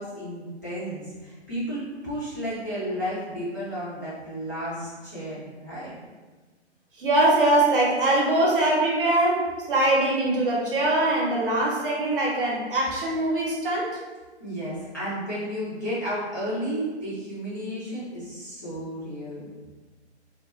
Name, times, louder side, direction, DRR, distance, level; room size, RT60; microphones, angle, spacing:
voice 1, 0.0-5.9 14.4-19.5, equal, 20° left, -13 dB, 0.3 m, -32 dB
voice 2, 7.0-14.0, right 2 dB, 50° right, -3 dB, 0.7 m, -22 dB
2.2 x 2.2 x 2.9 m, 1.3 s
figure-of-eight pair, 125°, 34 cm